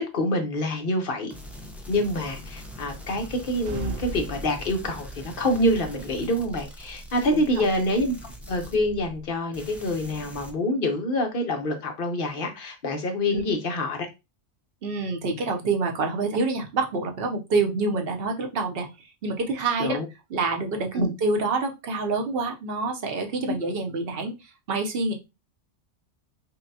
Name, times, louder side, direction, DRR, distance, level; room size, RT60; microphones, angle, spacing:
voice 1, 0.1-1.3 1.9-8.1 8.5-14.1 19.8-20.0 20.9-21.1 23.5-23.6, left 1 dB, 50° left, 0.9 m, -26 dB
sound 1, 1.3-9.3 9.5-10.5, equal, ahead, 0.3 m, -42 dB
sound 2, 3.6-5.3, right 3 dB, 80° right, 1.0 m, -35 dB
voice 2, 7.3-7.7 13.3-13.4 14.8-18.9 19.2-20.0 20.3-25.1, right 3 dB, 55° right, 0.9 m, -27 dB
5.5 x 2.2 x 2.7 m
omnidirectional pair, 1.3 m